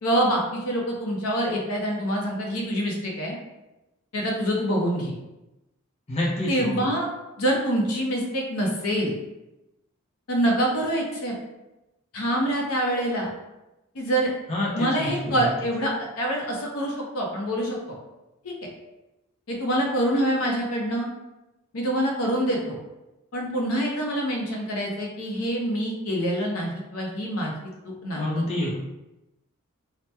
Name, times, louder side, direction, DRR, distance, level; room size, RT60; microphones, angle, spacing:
voice 1, 0.0-3.4 4.1-5.1 6.5-7.1 7.4-9.1 10.3-11.3 12.1-13.3 13.9-14.3 14.7-17.8 18.4-18.5 19.5-21.1 21.7-22.8 23.3-27.5 27.8-28.5, right 1 dB, 75° left, -1 dB, 0.6 m, -25 dB
voice 2, 6.1-6.9 14.5-15.5 28.2-28.7, left 1 dB, 30° left, -4 dB, 0.6 m, -28 dB
2.8 x 2.1 x 3.3 m, 0.97 s
head